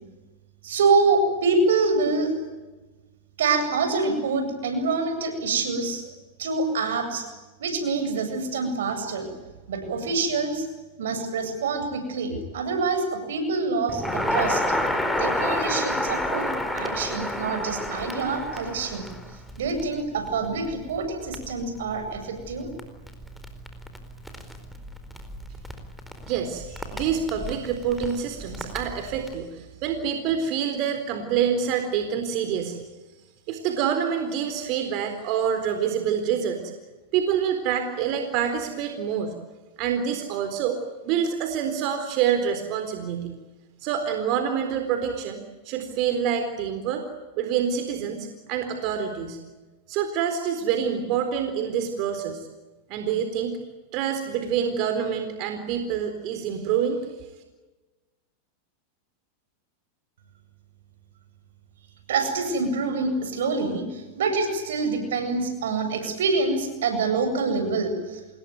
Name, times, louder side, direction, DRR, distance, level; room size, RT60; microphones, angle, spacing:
voice 1, 0.6-2.3 3.4-6.0 6.4-7.3 7.6-9.3 9.7-10.7 11.0-14.6 15.2-19.1 19.6-22.7 62.1-68.2, right 4 dB, 85° right, 7 dB, 7.9 m, -26 dB
Crackle, 13.9-29.3, left 1 dB, ahead, 4.4 m, -31 dB
voice 2, 26.2-32.8 33.5-36.6 37.1-39.3 39.8-40.8 41.0-43.3 43.8-47.0 47.4-49.4 49.9-52.5 52.9-53.6 53.9-57.1, right 8 dB, 50° right, 7 dB, 4.0 m, -26 dB
28.0 x 21.0 x 9.5 m, 1.2 s
supercardioid pair, 125°, 0 cm